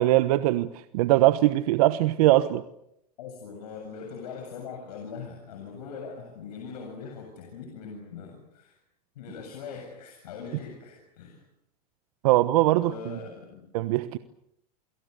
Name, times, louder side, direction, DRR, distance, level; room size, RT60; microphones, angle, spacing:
voice 1, 0.0-2.6 12.2-13.2 13.7-14.2, right 16 dB, 65° right, 12 dB, 1.2 m, -21 dB
voice 2, 3.2-8.8 9.2-11.4 12.8-13.7, left 5 dB, 80° left, 3 dB, 7.6 m, -41 dB
29.0 x 26.5 x 6.8 m, 0.76 s
supercardioid pair, 125°, 20 cm